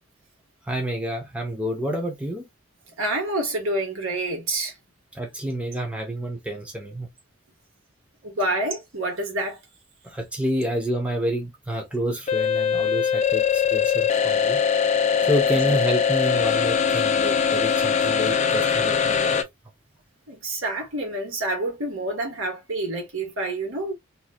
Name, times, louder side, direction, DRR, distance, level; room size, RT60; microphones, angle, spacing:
voice 1, 0.7-2.4 5.1-7.1 10.0-14.6 15.3-19.4, equal, 5° right, 0.8 m, -28 dB
voice 2, 3.0-4.7 8.2-9.6 15.2-15.3 20.3-23.9, right 1 dB, 75° right, 1.5 m, -28 dB
sound 1, 12.3-19.4, left 7 dB, 35° left, 0.4 m, -21 dB
3.0 x 3.0 x 2.3 m
head